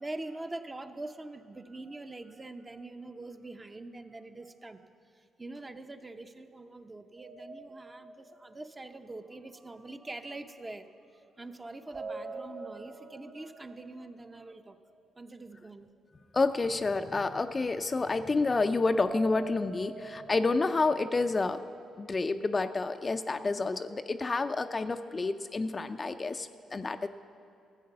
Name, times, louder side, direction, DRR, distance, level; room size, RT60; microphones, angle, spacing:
voice 1, 0.0-4.9 5.1-14.8 15.2-15.9, right 2 dB, 20° right, 8 dB, 0.6 m, -44 dB
sound 1, 7.2-9.2 11.9-14.8 19.1-21.3, right 3 dB, 40° right, 1.6 m, -45 dB
voice 2, 16.3-21.6 22.0-27.1, left 3 dB, 30° left, 9 dB, 0.4 m, -29 dB
14.0 x 7.9 x 6.6 m, 2.7 s
cardioid pair, 90°, 0 cm